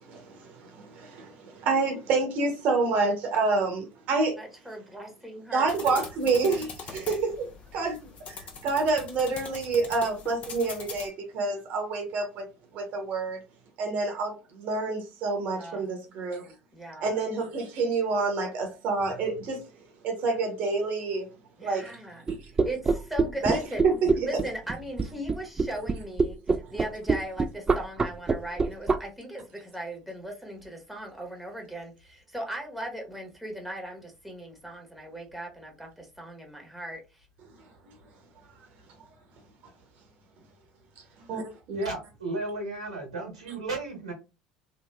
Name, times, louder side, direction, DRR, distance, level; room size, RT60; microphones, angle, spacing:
voice 1, 0.0-4.4 5.5-12.5 12.7-13.4 13.8-16.5 17.0-19.6 20.0-21.3 21.6-22.0 22.3-22.5 23.4-24.4 26.6-26.7 37.6-37.9 41.3-41.4 41.7-41.8, right 3 dB, 55° right, 0.9 m, -28 dB
voice 2, 4.4-5.7 15.6-15.9 16.7-17.2 21.6-22.2 22.6-23.9 24.2-37.0, right 1 dB, ahead, 1.2 m, -38 dB
sound 1, 5.7-11.1, left 5 dB, 40° left, 0.7 m, -42 dB
sound 2, 22.3-29.0, right 4 dB, 20° right, 0.3 m, -24 dB
voice 3, 41.7-44.1, right 2 dB, 85° right, 1.2 m, -34 dB
2.9 x 2.5 x 2.3 m
figure-of-eight pair, 65°, 3 cm